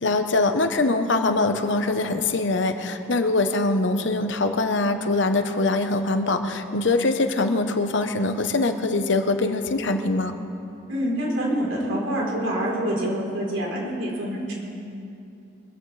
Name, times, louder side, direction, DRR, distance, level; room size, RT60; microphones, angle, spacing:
voice 1, 0.0-10.3, left 2 dB, 70° left, 7 dB, 0.9 m, -23 dB
voice 2, 10.9-14.5, equal, 90° right, -4 dB, 3.7 m, -26 dB
23.5 x 14.5 x 3.3 m, 2.7 s
head